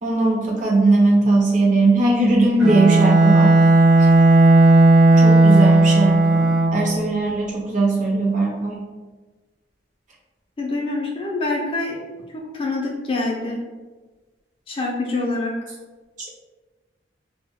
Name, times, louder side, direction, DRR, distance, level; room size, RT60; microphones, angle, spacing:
voice 1, 0.0-3.5 4.0-4.1 5.1-8.8, right 2 dB, 40° right, -2 dB, 0.5 m, -19 dB
Bowed string instrument, 2.6-6.9, right 2 dB, 80° right, 0.8 m, -13 dB
voice 2, 10.6-12.0 12.3-13.6 14.7-15.5, left 2 dB, 30° left, -2 dB, 0.4 m, -25 dB
2.2 x 2.0 x 3.5 m, 1.3 s
head